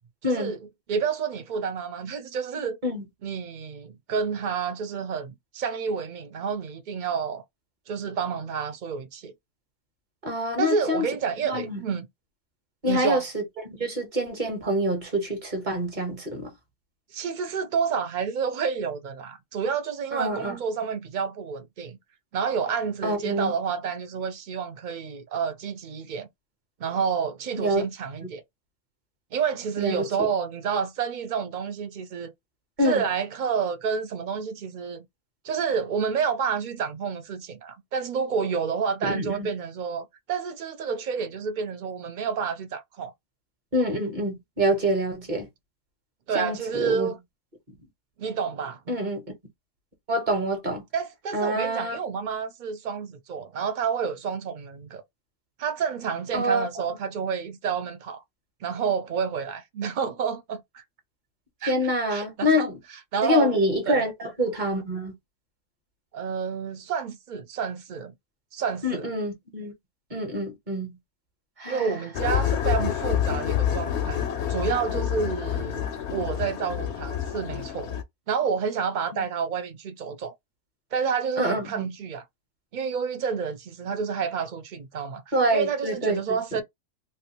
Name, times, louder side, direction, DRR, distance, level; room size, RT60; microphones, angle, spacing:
voice 1, 0.2-0.6 0.9-2.8 3.2-7.4 7.9-9.3 10.6-12.1 12.9-13.2 17.1-22.0 22.3-26.3 26.8-28.4 29.3-32.3 32.8-35.1 35.4-43.1 46.3-47.2 48.2-49.0 50.9-55.0 55.6-58.2 58.6-60.8 61.6-61.7 62.1-63.5 63.9-64.0 66.1-68.1 68.5-69.1 71.7-74.2 74.5-78.0 78.3-80.3 80.9-82.2 82.7-86.6, right 6 dB, 55° right, 0.5 m, -29 dB
voice 2, 10.2-11.0 11.5-11.8 12.8-13.4 13.8-16.5 20.1-20.5 23.0-23.5 27.6-27.8 28.2-28.3 29.8-30.3 32.8-33.0 39.0-39.5 43.7-45.5 46.3-47.1 48.9-49.2 50.1-50.8 51.3-52.0 56.3-56.7 61.7-62.8 63.2-65.1 68.8-69.7 70.1-70.9 71.6-71.9 81.4-81.9 85.3-86.4, equal, 40° right, 1.3 m, -26 dB
sound 1, 72.1-78.0, left 9 dB, 65° left, 0.9 m, -27 dB
3.3 x 2.6 x 2.8 m
omnidirectional pair, 1.3 m